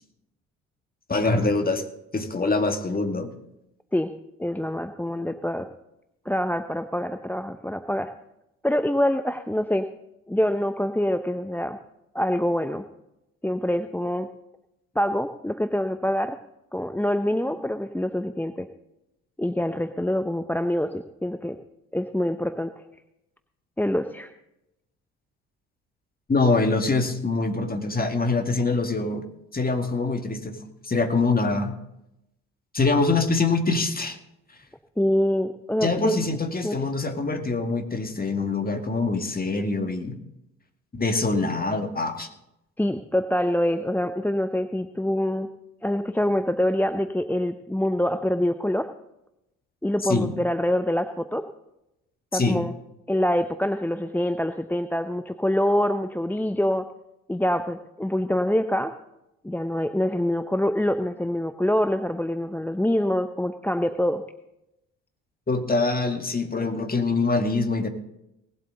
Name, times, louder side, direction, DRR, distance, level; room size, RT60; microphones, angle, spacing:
voice 1, 1.1-1.8 2.1-3.3 26.3-29.2 29.5-31.8 32.7-34.2 35.8-40.2 40.9-42.3 50.1-50.3 52.3-52.6 65.5-67.9, left 3 dB, 25° left, 6 dB, 2.1 m, -24 dB
voice 2, 4.4-5.7 6.2-8.1 8.6-9.9 10.3-11.8 12.1-12.8 13.4-14.3 14.9-16.4 16.7-18.7 19.4-21.6 21.9-22.8 23.8-24.3 35.0-36.1 36.6-36.7 42.8-45.5 45.8-48.9 49.8-51.4 52.3-52.7 53.1-56.8 57.3-58.9 59.4-64.2, left 1 dB, 5° left, 9 dB, 0.7 m, -25 dB
19.0 x 7.9 x 3.9 m, 0.84 s
hypercardioid pair, 55°, 38 cm